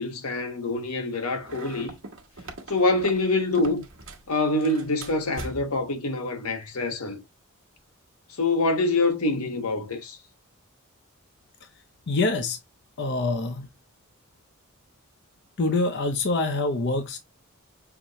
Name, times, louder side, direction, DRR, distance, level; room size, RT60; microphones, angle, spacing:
voice 1, 0.0-1.9 2.7-3.8 4.3-7.2 8.4-10.2, left 2 dB, 85° left, 1.1 m, -25 dB
sound 1, 1.4-4.3 4.6-5.9, right 2 dB, 60° right, 1.0 m, -41 dB
voice 2, 12.1-12.6 13.0-13.7 15.6-17.2, left 2 dB, 50° left, 0.6 m, -25 dB
5.9 x 2.7 x 3.0 m
head